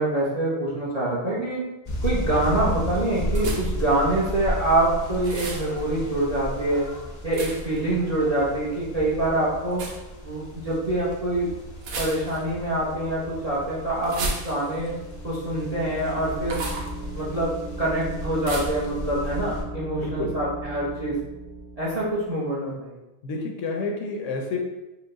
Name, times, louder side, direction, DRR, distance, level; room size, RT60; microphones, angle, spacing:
voice 1, 0.0-1.6 2.0-6.9 7.2-9.9 10.2-11.5 12.0-14.9 15.2-16.6 17.1-21.2 21.8-22.9, right 1 dB, 40° right, -6 dB, 0.6 m, -25 dB
sound 1, 1.9-19.6, equal, 45° left, 0.5 m, -34 dB
sound 2, 3.3-3.9 5.2-5.7 7.3-7.8 9.7-10.0 11.8-12.5 14.0-14.9 16.4-16.9 18.4-18.9, right 2 dB, 90° right, 1.1 m, -32 dB
sound 3, 14.6-22.3, right 1 dB, 65° right, 1.5 m, -38 dB
voice 2, 23.2-24.6, left 3 dB, 70° left, 1 dB, 0.9 m, -29 dB
4.4 x 2.1 x 3.8 m, 1.0 s
omnidirectional pair, 1.4 m